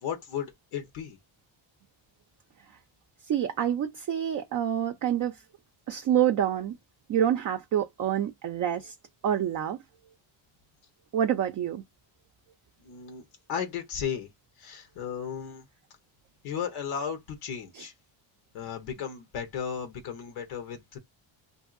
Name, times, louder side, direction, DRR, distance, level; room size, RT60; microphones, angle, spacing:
voice 1, 0.0-1.2 12.8-13.2 13.5-14.3 14.6-15.6 16.4-17.9 18.5-21.0, left 7 dB, 85° left, 1.0 m, -35 dB
voice 2, 3.3-5.4 5.9-6.8 7.1-8.9 9.2-9.8 11.1-11.8 17.7-17.9, right 10 dB, 40° right, 0.4 m, -27 dB
2.7 x 2.6 x 2.4 m
cardioid pair, 80°, 50 cm